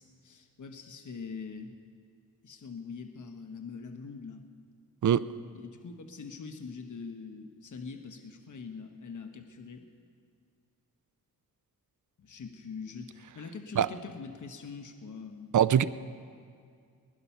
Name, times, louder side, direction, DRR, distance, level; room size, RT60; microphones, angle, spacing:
voice 1, 0.0-1.8 2.4-4.5 5.5-9.9 12.2-15.5, left 5 dB, 55° left, 6 dB, 1.1 m, -43 dB
voice 2, 15.5-15.8, right 9 dB, 60° right, 16 dB, 0.5 m, -22 dB
20.5 x 11.0 x 5.7 m, 2.2 s
cardioid pair, 75°, 35 cm